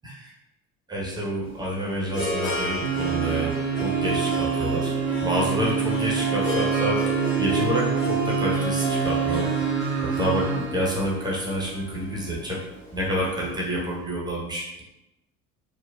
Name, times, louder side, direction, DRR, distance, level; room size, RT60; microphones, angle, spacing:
voice 1, 0.9-4.9 5.2-7.0 7.4-9.5 10.0-12.6 12.9-14.8, equal, 10° right, -4 dB, 0.7 m, -28 dB
Harp, 1.5-13.6, right 1 dB, 25° left, 0.9 m, -31 dB
sound 1, 2.8-10.7 11.0-11.1, right 7 dB, 40° right, 0.5 m, -26 dB
3.0 x 2.1 x 2.2 m, 0.97 s
figure-of-eight pair, 55°, 43 cm